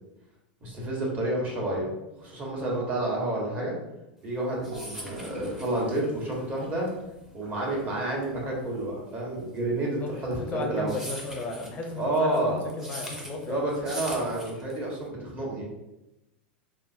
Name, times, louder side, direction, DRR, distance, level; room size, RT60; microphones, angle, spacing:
voice 1, 0.6-1.9 2.2-3.8 4.2-6.9 7.3-10.9 12.0-12.7 13.5-15.7, right 2 dB, 30° right, -2 dB, 1.2 m, -29 dB
sound 1, 4.3-15.1, equal, 5° right, 0.7 m, -42 dB
Gurgling / Toilet flush, 4.7-8.7, equal, 65° right, 1.3 m, -46 dB
voice 2, 9.8-13.6, left 2 dB, 30° left, 2 dB, 0.6 m, -35 dB
4.1 x 2.0 x 2.7 m, 0.95 s
hypercardioid pair, 90°, 6 cm